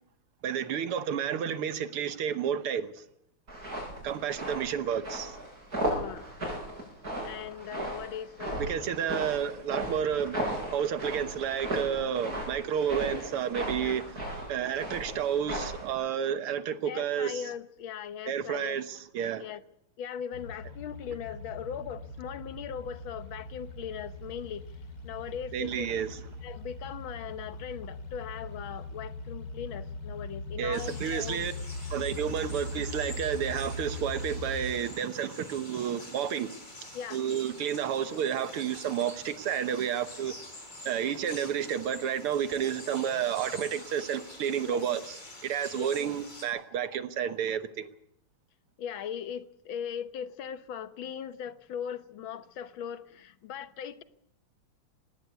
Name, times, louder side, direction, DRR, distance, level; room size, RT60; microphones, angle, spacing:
voice 1, 0.4-3.0 4.0-5.4 8.6-14.2 14.5-17.4 18.3-19.5 25.5-26.2 30.6-31.5 31.9-36.6 37.1-40.4 40.9-47.9, right 8 dB, 85° right, 2.1 m, -31 dB
sound 1, 3.5-15.9, right 1 dB, 40° right, 8.3 m, -36 dB
voice 2, 5.9-6.6 7.2-8.9 13.8-14.0 16.9-18.8 19.4-19.6 20.0-24.7 25.0-25.9 26.4-31.7 36.9-37.2 44.7-44.8 45.7-45.9 48.8-54.0, left 8 dB, 70° left, 1.7 m, -39 dB
sound 2, 20.3-34.7, left 2 dB, 50° left, 3.6 m, -40 dB
sound 3, 30.7-46.5, left 1 dB, 20° left, 4.7 m, -47 dB
19.5 x 17.0 x 8.2 m
omnidirectional pair, 2.4 m